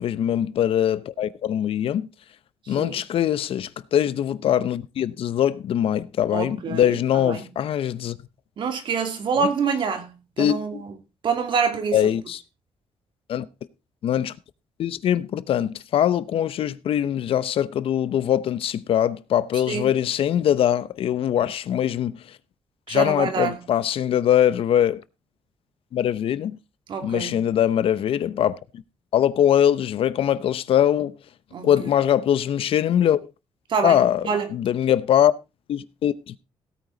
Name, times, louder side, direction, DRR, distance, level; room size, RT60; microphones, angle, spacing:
voice 1, 0.0-2.1 2.7-8.2 9.4-9.5 10.4-10.8 11.9-12.4 13.3-13.5 14.0-14.3 14.8-22.4 22.9-25.0 25.9-26.6 27.0-28.8 29.1-31.1 31.6-33.2 33.8-35.3 35.7-36.4, left 10 dB, 65° left, 0.8 m, -22 dB
voice 2, 2.6-3.0 6.3-7.4 8.6-10.9 11.2-12.1 19.7-19.9 22.9-23.6 26.9-27.4 31.5-31.9 33.7-34.0 34.2-34.5, right 5 dB, 55° right, 2.6 m, -26 dB
16.5 x 9.1 x 3.9 m
wide cardioid pair, 175°, 10 cm